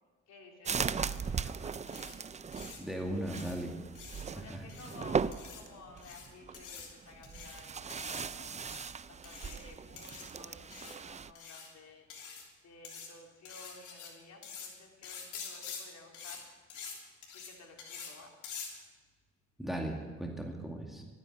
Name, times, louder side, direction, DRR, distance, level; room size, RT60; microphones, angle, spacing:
voice 1, 0.3-2.2 4.3-8.8 9.1-12.1 12.6-16.5 17.3-18.3, left 3 dB, 60° left, 1 dB, 3.1 m, -54 dB
sound 1, 0.7-11.3, right 6 dB, 25° right, 0.4 m, -38 dB
sound 2, 1.9-2.1 2.5-2.8 3.4-3.5 3.9-4.2 4.7-5.0 5.3-5.6 6.0-6.3 6.5-6.9 7.2-7.6 7.9-8.2 8.6-8.9 9.2-9.6 10.0-10.2 10.7-11.0 11.3-11.7 12.1-12.5 12.8-13.1 13.4-14.1 14.4-14.7 15.0-15.8 16.1-16.4 16.7-16.9 17.2-17.5 17.8-18.1 18.4-18.7, left 6 dB, 85° left, 3.4 m, -46 dB
voice 2, 2.4-3.8 4.3-4.6 19.6-21.0, right 1 dB, ahead, 0 dB, 2.2 m, -38 dB
12.5 x 9.7 x 8.9 m, 1.4 s
cardioid pair, 90°, 30 cm